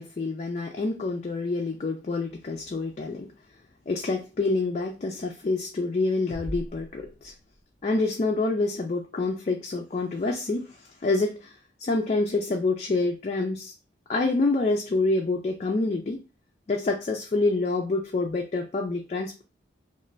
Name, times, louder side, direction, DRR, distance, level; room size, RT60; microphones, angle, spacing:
voice 1, 0.0-3.3 3.9-7.3 7.8-13.7 14.1-16.2 16.7-19.4, left 3 dB, 35° left, 1 dB, 0.3 m, -27 dB
sound 1, 6.3-8.0, equal, 80° right, 1.3 m, -40 dB
2.4 x 2.4 x 3.0 m, 0.30 s
head